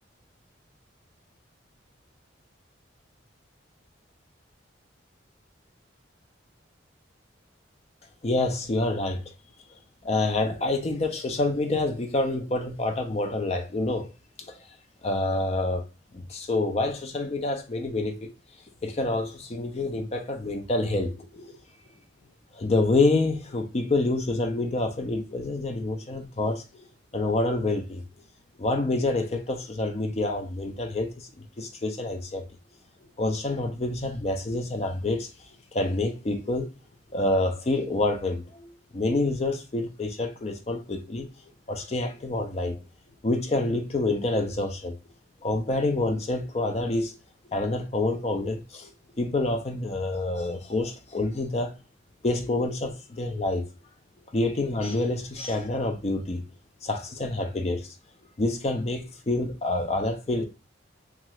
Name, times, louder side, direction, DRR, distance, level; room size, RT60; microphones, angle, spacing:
voice 1, 8.2-9.3 10.0-14.1 14.4-14.5 15.0-15.8 16.1-18.3 18.8-21.6 22.5-26.9 27.1-28.0 28.6-32.4 33.2-35.3 35.7-36.7 37.1-41.3 41.7-42.8 43.2-44.9 45.4-47.2 47.5-48.9 49.2-51.7 52.2-53.6 54.3-56.4 56.8-57.9 58.4-60.4, left 2 dB, 35° left, 0.4 m, -27 dB
2.7 x 2.4 x 3.0 m
head